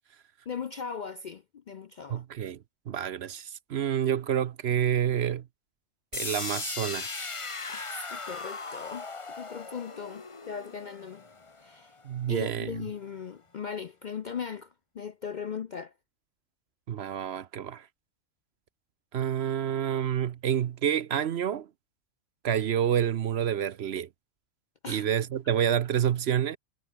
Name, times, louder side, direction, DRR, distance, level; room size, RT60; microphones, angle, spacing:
voice 1, 0.5-2.2 7.7-9.1 9.4-11.2 11.6-12.0 12.3-15.9 24.8-25.1, left 6 dB, 55° left, 0.5 m, -38 dB
voice 2, 2.1-5.5 6.1-7.3 12.0-12.8 16.9-17.9 19.1-21.7 22.4-24.1 24.9-26.6, right 9 dB, 60° right, 0.9 m, -28 dB
sound 1, 6.1-12.1, left 4 dB, 25° left, 1.1 m, -38 dB
omnidirectional pair, 1.3 m